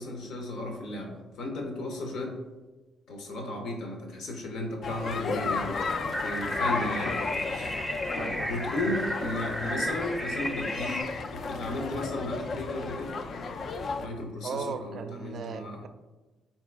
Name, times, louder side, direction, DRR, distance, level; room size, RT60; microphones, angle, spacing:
voice 1, 0.0-2.4 3.1-7.8 8.5-11.1 11.3-13.2 14.0-15.8, left 1 dB, 80° left, 2 dB, 0.8 m, -35 dB
sound 1, 4.8-14.1, left 4 dB, 50° left, 0.3 m, -34 dB
sound 2, 6.1-11.0, equal, 10° left, 0.6 m, -34 dB
voice 2, 8.1-8.5 14.4-15.9, right 5 dB, 60° right, 9 dB, 0.3 m, -37 dB
4.0 x 2.9 x 3.4 m, 1.2 s
cardioid pair, 90°, 0 cm